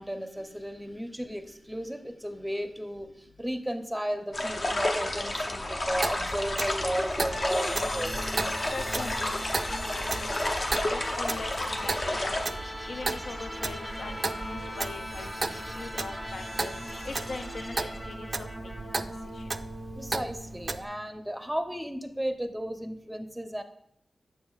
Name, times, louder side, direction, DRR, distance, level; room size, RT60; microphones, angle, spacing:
voice 1, 0.0-8.4 19.9-23.6, equal, 5° right, 7 dB, 0.7 m, -34 dB
sound 1, 4.3-12.5, left 1 dB, 45° left, 0.8 m, -31 dB
Clock, 5.9-20.8, right 3 dB, 45° right, 0.3 m, -36 dB
sound 2, 7.3-21.2, equal, 15° left, 1.8 m, -39 dB
voice 2, 8.7-9.4 9.7-10.0 10.4-12.6 12.9-14.1 14.4-16.7 17.0-18.7 19.3-19.4, left 3 dB, 80° left, 6 dB, 0.5 m, -41 dB
6.9 x 6.7 x 2.4 m, 0.75 s
cardioid pair, 60°, 0 cm